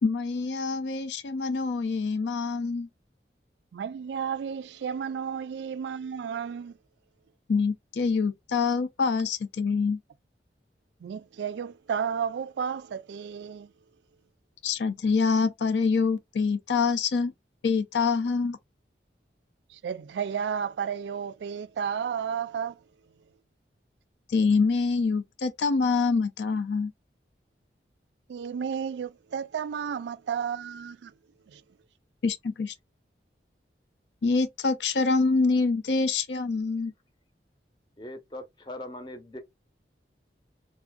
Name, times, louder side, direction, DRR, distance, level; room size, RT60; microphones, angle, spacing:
voice 1, 0.0-2.9 7.5-10.0 14.6-17.3 17.6-18.6 24.3-26.9 32.2-32.7 34.2-36.9, left 4 dB, 80° left, 0.5 m, -25 dB
voice 2, 3.7-6.7 11.0-13.7 19.7-22.8 28.3-31.1 31.5-31.6, right 7 dB, 75° right, 0.3 m, -32 dB
voice 3, 38.0-39.4, left 1 dB, 25° left, 0.6 m, -40 dB
3.4 x 2.5 x 2.3 m
head